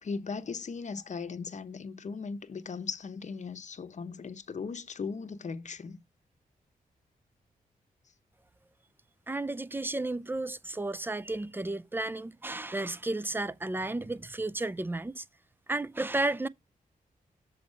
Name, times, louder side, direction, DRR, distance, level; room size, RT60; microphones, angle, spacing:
voice 1, 0.0-6.0, left 5 dB, 50° left, 0.8 m, -38 dB
voice 2, 9.3-15.2 15.7-16.5, right 2 dB, 15° right, 0.4 m, -33 dB
7.2 x 4.3 x 5.2 m
cardioid pair, 65°, 15 cm